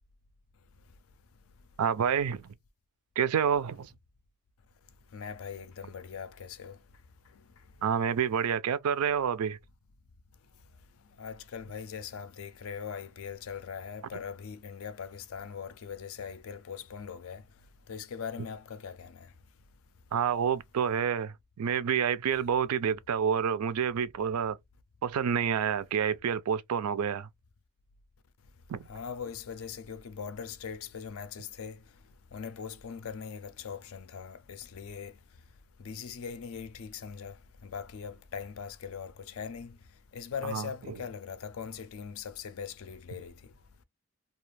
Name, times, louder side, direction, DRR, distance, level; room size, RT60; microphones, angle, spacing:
voice 1, 1.8-2.5 3.2-3.9 7.8-9.6 20.1-24.6 25.0-27.3 28.7-28.8 40.5-40.7, right 7 dB, 85° right, 0.4 m, -28 dB
voice 2, 5.1-6.8 11.2-17.4 17.9-19.3 28.9-31.8 32.3-35.1 35.8-37.3 37.6-39.8 40.1-43.3, left 6 dB, 65° left, 0.4 m, -41 dB
2.4 x 2.3 x 3.1 m
head